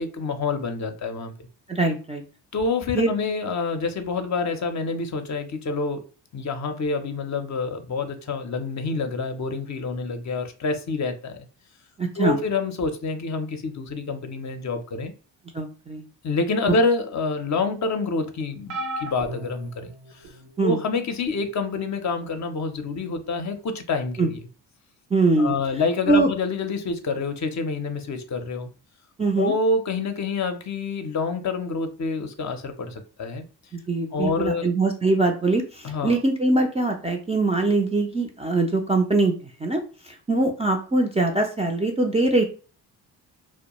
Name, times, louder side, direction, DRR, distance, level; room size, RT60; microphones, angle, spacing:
voice 1, 0.0-1.3 2.5-6.0 6.3-11.4 12.1-15.1 16.2-19.9 20.6-24.4 25.4-28.7 29.4-33.4 34.1-34.7 35.8-36.2, left 4 dB, 40° left, 0.5 m, -27 dB
voice 2, 1.7-2.2 3.0-3.1 12.0-12.4 15.5-16.0 20.6-20.8 24.2-24.3 25.1-25.5 26.1-26.3 29.2-29.5 33.7-39.3 39.6-39.8 40.1-42.4, right 2 dB, 15° right, 0.3 m, -22 dB
sound 1, 18.7-20.5 21.2-21.5 22.8-22.9, right 1 dB, 90° right, 0.6 m, -35 dB
2.2 x 2.1 x 2.9 m
supercardioid pair, 55°, 44 cm